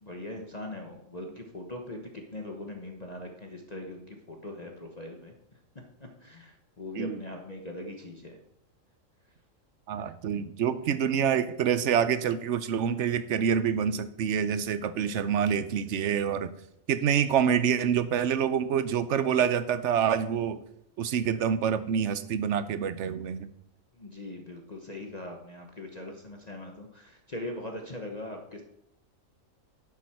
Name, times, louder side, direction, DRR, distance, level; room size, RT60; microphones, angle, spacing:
voice 1, 0.0-5.3 5.7-8.4 23.9-28.6, left 1 dB, 35° left, 2 dB, 1.1 m, -41 dB
voice 2, 9.9-16.5 16.9-20.6 21.0-23.5, right 8 dB, 65° right, 13 dB, 0.9 m, -27 dB
11.5 x 7.2 x 4.5 m, 0.77 s
omnidirectional pair, 1.4 m